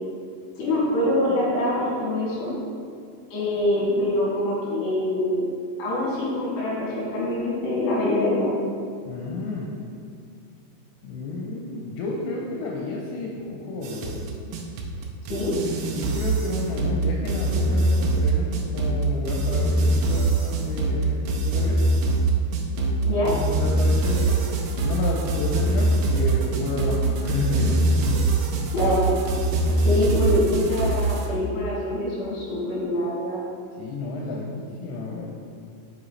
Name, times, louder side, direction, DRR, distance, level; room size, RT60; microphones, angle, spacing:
voice 1, 0.6-2.6 3.3-5.5 5.8-8.6 15.3-15.5 23.0-23.3 28.7-29.1 29.9-33.4, left 1 dB, 70° left, -6 dB, 3.9 m, -24 dB
voice 2, 9.0-9.7 11.0-14.2 15.9-21.8 23.2-28.4 33.8-35.3, left 2 dB, 90° left, -2 dB, 3.1 m, -31 dB
sound 1, 13.8-31.3, right 2 dB, 85° right, 2.7 m, -23 dB
7.4 x 5.8 x 3.2 m, 2.3 s
omnidirectional pair, 5.2 m